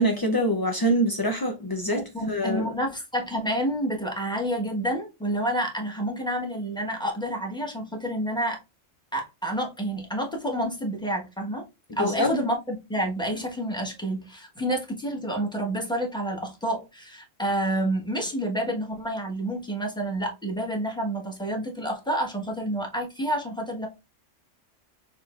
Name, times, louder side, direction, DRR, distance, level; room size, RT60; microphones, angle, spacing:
voice 1, 0.0-2.7 11.9-12.3, equal, 35° left, 0.3 m, -25 dB
voice 2, 1.9-8.6 9.1-11.7 12.0-23.9, right 1 dB, 5° left, 1.2 m, -29 dB
6.5 x 3.1 x 2.5 m
omnidirectional pair, 1.3 m